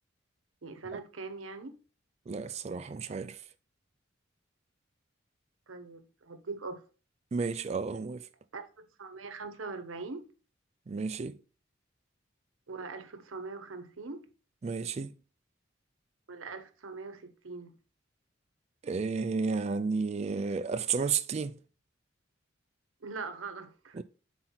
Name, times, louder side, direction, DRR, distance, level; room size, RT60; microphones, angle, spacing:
voice 1, 0.6-1.8 5.7-6.8 8.5-10.3 12.7-14.3 16.3-17.7 23.0-24.0, right 4 dB, 90° right, 0.8 m, -42 dB
voice 2, 2.3-3.4 7.3-8.3 10.9-11.4 14.6-15.2 18.8-21.6 23.9-24.0, right 5 dB, 35° right, 0.3 m, -32 dB
5.8 x 4.4 x 3.9 m
head